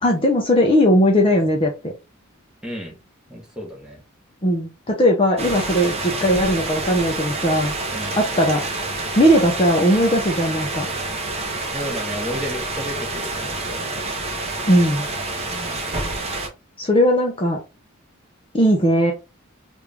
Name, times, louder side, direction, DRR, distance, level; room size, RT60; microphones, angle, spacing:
voice 1, 0.0-1.9 4.4-7.8 8.2-8.6 9.2-10.9 14.7-15.1 16.8-17.6 18.5-19.1, equal, 25° left, 0 dB, 0.6 m, -18 dB
voice 2, 2.6-3.0 3.3-4.0 7.9-8.2 11.7-14.0 15.4-15.9, equal, 5° right, -1 dB, 1.0 m, -33 dB
sound 1, 5.4-16.5, right 2 dB, 30° right, 0.8 m, -28 dB
3.2 x 2.6 x 3.4 m, 0.27 s
head